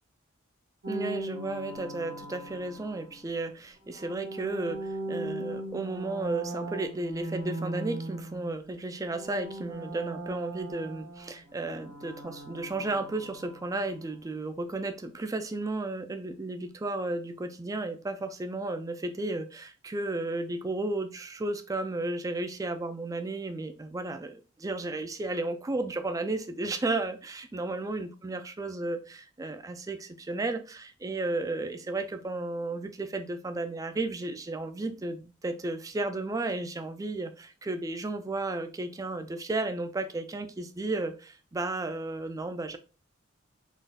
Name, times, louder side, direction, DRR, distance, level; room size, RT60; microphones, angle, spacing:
sound 1, 0.8-3.3 3.9-8.8 9.0-14.0, right 1 dB, 80° right, 1.1 m, -39 dB
voice 1, 0.9-24.2 24.6-42.8, right 2 dB, 15° right, 0.3 m, -33 dB
3.8 x 2.4 x 2.6 m
head